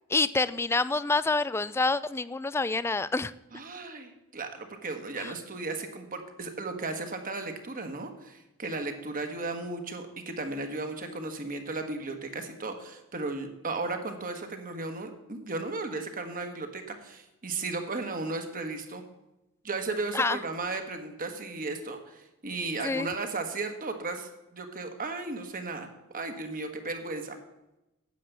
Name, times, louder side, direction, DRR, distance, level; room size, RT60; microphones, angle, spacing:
voice 1, 0.1-3.3 5.2-5.3 20.1-20.4 22.8-23.1, left 3 dB, 10° left, 17 dB, 0.3 m, -27 dB
voice 2, 3.5-19.0 19.6-25.9 26.1-27.4, right 3 dB, 40° right, 6 dB, 1.4 m, -35 dB
9.5 x 7.6 x 6.9 m, 0.93 s
head